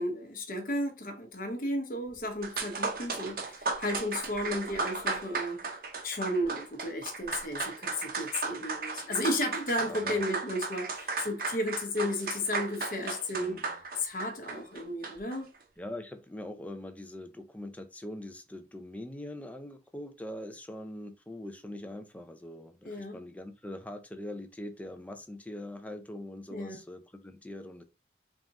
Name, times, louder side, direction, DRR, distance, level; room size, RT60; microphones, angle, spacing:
voice 1, 0.0-5.6 6.0-13.7 13.9-15.5 22.9-23.2 26.5-26.8, left 1 dB, 50° left, 0.9 m, -33 dB
sound 1, 2.1-2.2 2.4-15.4, right 4 dB, 50° right, 0.7 m, -35 dB
voice 2, 9.8-10.2 13.3-13.7 15.8-27.8, left 1 dB, 10° left, 0.4 m, -42 dB
3.6 x 2.4 x 4.0 m
head